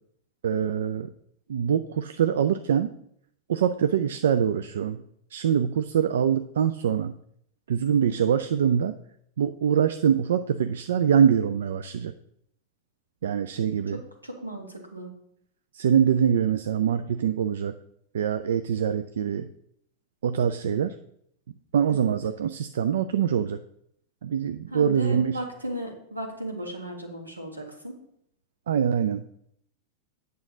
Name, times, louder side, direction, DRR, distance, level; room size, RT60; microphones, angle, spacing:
voice 1, 0.4-1.1 1.5-2.9 3.5-5.0 5.3-7.1 7.7-9.0 9.4-12.1 13.2-14.0 15.7-17.8 18.1-19.5 20.2-21.0 21.7-23.6 24.2-25.4 28.7-29.2, right 8 dB, 60° right, 11 dB, 0.4 m, -24 dB
voice 2, 13.9-15.1 21.9-22.1 24.7-27.9, right 1 dB, 80° right, 2 dB, 1.7 m, -36 dB
8.9 x 6.8 x 3.8 m, 0.72 s
figure-of-eight pair, 90°, 0 cm